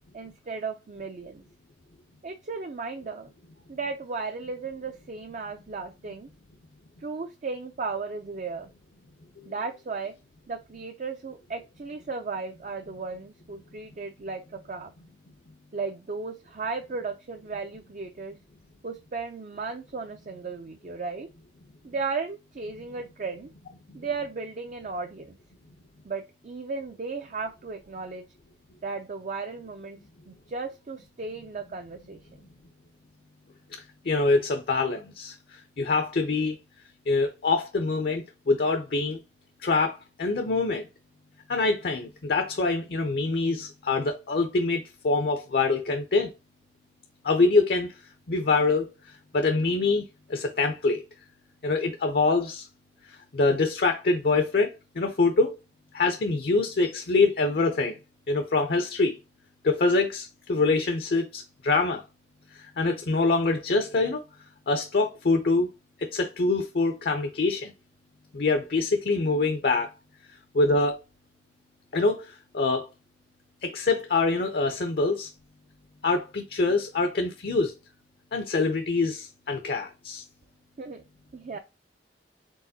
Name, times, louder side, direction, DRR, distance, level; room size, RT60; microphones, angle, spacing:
voice 1, 0.1-1.4 2.2-3.3 3.7-6.3 7.0-8.7 9.5-10.1 10.5-14.9 15.7-18.4 18.8-21.3 21.8-23.5 23.9-25.4 26.0-28.2 28.8-30.0 30.3-32.2 80.8-81.0 81.3-81.6, right 4 dB, 45° right, 0.5 m, -35 dB
voice 2, 34.0-35.3 35.8-36.6 37.1-39.2 39.6-40.9 41.5-46.3 47.2-47.9 48.3-48.9 49.3-50.0 50.3-51.0 51.6-52.7 53.3-55.6 55.9-58.0 58.3-59.2 59.6-62.0 62.8-64.2 64.7-65.7 66.0-67.7 68.3-69.9 70.5-71.0 71.9-72.3 72.5-72.9 73.6-75.3 76.0-77.7 78.3-80.2, left 3 dB, 60° left, 0.6 m, -25 dB
4.6 x 3.9 x 2.7 m
head